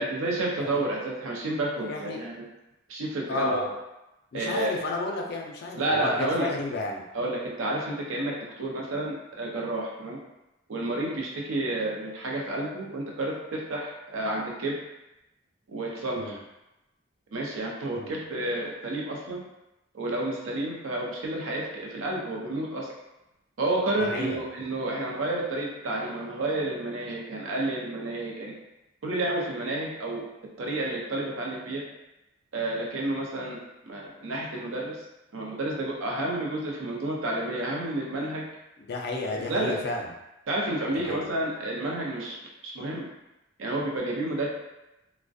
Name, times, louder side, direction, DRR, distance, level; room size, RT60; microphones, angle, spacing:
voice 1, 0.0-2.4 2.9-3.6 4.3-4.7 5.8-6.5 7.1-10.2 10.7-14.7 15.7-16.4 17.3-19.4 19.9-22.9 23.6-28.5 29.0-30.2 30.6-31.8 32.5-33.6 33.9-35.0 35.3-38.4 39.3-39.9 40.5-43.1 43.6-44.5, right 1 dB, 85° right, -2 dB, 0.5 m, -30 dB
voice 2, 1.8-2.2 3.3-3.7 4.3-7.0 16.2-16.4 17.9-18.1 24.0-24.4 38.8-40.1 41.0-41.3, left 3 dB, 50° left, 0 dB, 0.4 m, -32 dB
2.4 x 2.1 x 2.5 m, 0.95 s
head